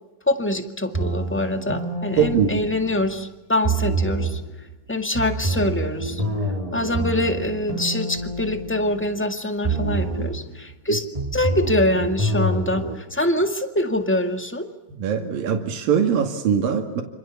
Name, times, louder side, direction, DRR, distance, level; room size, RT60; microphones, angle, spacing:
voice 1, 0.3-4.4 4.9-6.2 6.7-11.0 11.3-14.7, left 1 dB, 5° left, 6 dB, 0.8 m, -24 dB
sound 1, 0.9-3.2 3.6-4.5 5.2-9.3 9.6-10.5 11.2-12.9, right 2 dB, 10° right, 3.7 m, -27 dB
voice 2, 2.2-2.6 15.0-17.0, right 7 dB, 85° right, 4 dB, 4.0 m, -21 dB
28.0 x 26.5 x 7.2 m, 1.0 s
omnidirectional pair, 3.9 m